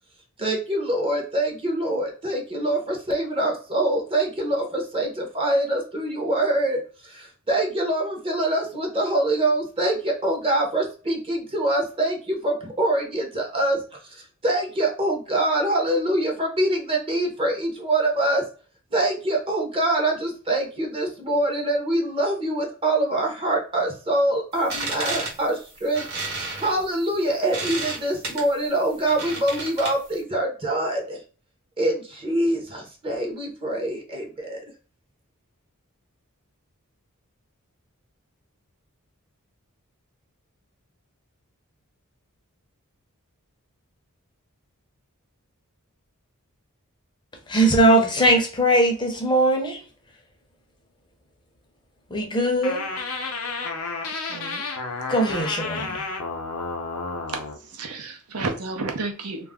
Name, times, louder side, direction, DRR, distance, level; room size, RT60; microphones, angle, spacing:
voice 1, 0.4-18.5 18.9-31.2 31.8-34.6, right 1 dB, 25° right, 0.6 m, -25 dB
sound 1, 24.5-30.2, right 3 dB, 50° right, 1.0 m, -33 dB
voice 2, 47.5-49.8 52.1-52.9 55.1-56.1, right 1 dB, 20° left, 0.5 m, -20 dB
sound 2, 52.6-57.6, left 3 dB, 75° left, 0.6 m, -31 dB
voice 3, 54.3-54.6 57.3-59.5, right 3 dB, 80° right, 0.7 m, -32 dB
2.3 x 2.0 x 3.4 m
head